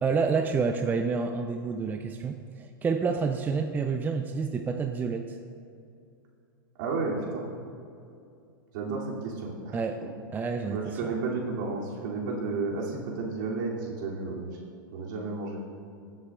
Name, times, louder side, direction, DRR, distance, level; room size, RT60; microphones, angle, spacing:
voice 1, 0.0-5.4 9.7-10.0 10.3-11.1, right 5 dB, 15° right, 6 dB, 0.4 m, -29 dB
voice 2, 6.8-7.4 8.7-10.1 10.7-14.6 14.9-15.6, right 3 dB, 60° right, -3 dB, 2.5 m, -32 dB
19.5 x 7.4 x 2.3 m, 2.5 s
hypercardioid pair, 115°, 12 cm